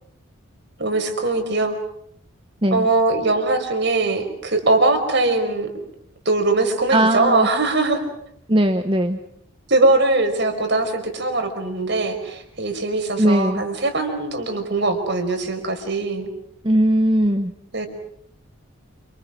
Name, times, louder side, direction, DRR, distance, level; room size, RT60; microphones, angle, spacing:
voice 1, 0.8-1.8 2.7-5.7 6.3-8.0 9.7-16.3 17.7-17.9, right 2 dB, 50° right, 6 dB, 5.1 m, -21 dB
voice 2, 6.9-7.5 8.5-9.2 13.2-13.6 16.6-17.5, right 1 dB, 25° right, 6 dB, 1.1 m, -18 dB
28.5 x 27.5 x 6.1 m, 0.70 s
head